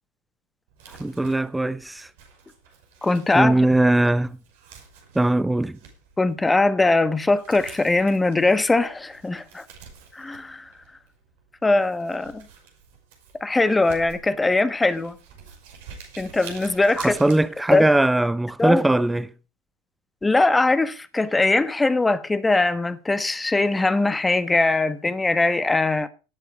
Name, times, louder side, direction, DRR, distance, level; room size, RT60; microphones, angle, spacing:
Crumpling crinkling, 0.7-18.1, right 6 dB, 65° right, 5.7 m, -48 dB
voice 1, 1.0-2.1 3.3-4.4 5.1-5.8 17.0-19.3, right 1 dB, 5° right, 0.7 m, -20 dB
voice 2, 3.0-3.6 6.2-9.6 10.1-10.7 11.6-12.5 13.4-15.2 16.2-17.2 17.7-17.8 18.6-18.8 20.2-26.1, left 2 dB, 10° left, 1.3 m, -21 dB
18.0 x 8.0 x 5.1 m
hypercardioid pair, 85°, 0 cm